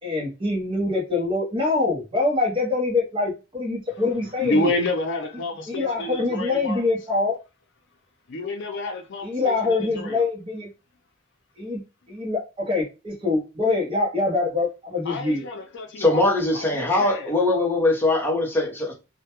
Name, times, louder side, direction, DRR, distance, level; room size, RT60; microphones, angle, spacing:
voice 1, 0.0-4.7 5.7-7.3 9.2-10.7 11.6-11.8 12.1-15.4, left 3 dB, 25° right, 0.7 m, -24 dB
voice 2, 4.4-6.8 8.3-10.2 15.1-17.3, left 2 dB, 60° left, 0.5 m, -29 dB
voice 3, 16.0-18.9, left 2 dB, 10° left, 0.6 m, -21 dB
2.1 x 2.1 x 2.8 m
head